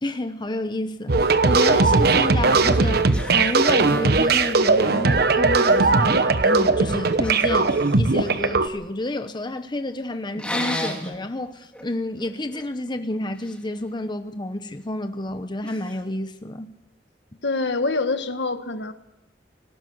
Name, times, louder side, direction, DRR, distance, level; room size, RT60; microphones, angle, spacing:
voice 1, 0.0-16.7, left 1 dB, 25° left, 0.9 m, -30 dB
sound 1, 1.1-8.7, right 3 dB, 60° right, 1.1 m, -19 dB
sound 2, 2.3-2.4 3.0-4.4 4.7-5.2 5.4-6.0 7.2-8.4 10.3-11.2 11.7-11.9 12.2-13.6 15.6-16.0, left 1 dB, 5° left, 3.2 m, -34 dB
voice 2, 17.4-18.9, left 3 dB, 75° left, 1.6 m, -25 dB
19.0 x 17.0 x 8.0 m
head